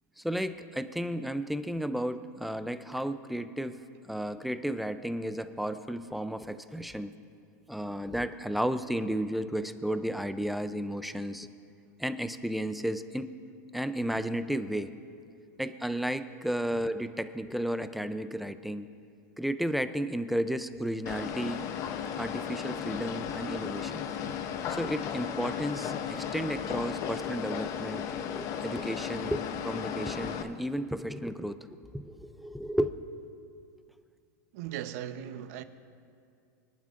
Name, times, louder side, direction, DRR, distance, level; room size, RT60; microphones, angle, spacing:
voice 1, 0.2-3.8 4.0-7.1 7.7-11.5 12.0-13.3 13.7-14.9 15.6-18.9 19.4-21.7 22.2-24.1 24.7-28.1 28.3-31.6 31.9-32.9, equal, ahead, 0.4 m, -33 dB
sound 1, 21.1-30.4, left 8 dB, 35° left, 0.7 m, -35 dB
voice 2, 34.5-35.6, right 11 dB, 60° right, 0.8 m, -38 dB
24.5 x 11.0 x 2.5 m
supercardioid pair, 145°, 10 cm